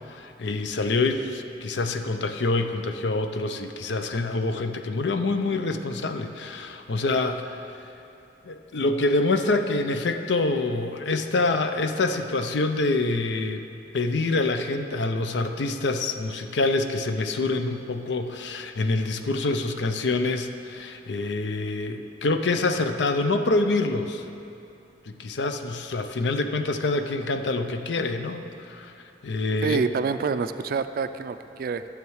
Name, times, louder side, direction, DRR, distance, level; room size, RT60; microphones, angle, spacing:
voice 1, 0.1-7.6 8.4-13.6 13.9-24.2 25.2-28.9 29.2-29.8, left 3 dB, 85° left, 7 dB, 0.6 m, -26 dB
voice 2, 29.6-31.9, right 5 dB, 55° right, 11 dB, 0.3 m, -27 dB
12.5 x 7.3 x 4.7 m, 2.7 s
head